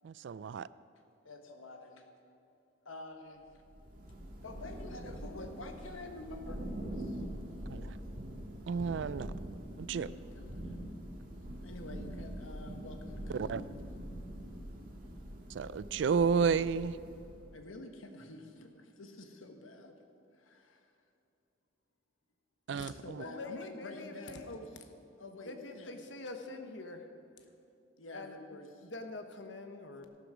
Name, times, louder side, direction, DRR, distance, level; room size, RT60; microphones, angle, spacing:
voice 1, 0.0-0.7 7.7-7.9 8.7-9.3 9.8-10.1 13.3-13.6 15.5-17.0 22.7-23.2, right 6 dB, 65° right, 18 dB, 0.3 m, -31 dB
voice 2, 1.2-2.1 2.8-3.4 4.4-7.2 9.9-10.8 11.6-13.7 17.5-20.0 20.4-20.9 22.7-24.8 25.2-26.1 28.0-28.9, left 2 dB, 90° left, 5 dB, 1.3 m, -48 dB
Thunder / Rain, 3.5-17.6, right 1 dB, 45° right, 2.0 m, -44 dB
voice 3, 23.2-24.4 25.5-27.0 28.1-28.4 28.8-30.0, left 3 dB, 65° left, 6 dB, 1.1 m, -45 dB
13.5 x 12.0 x 5.0 m, 2.7 s
head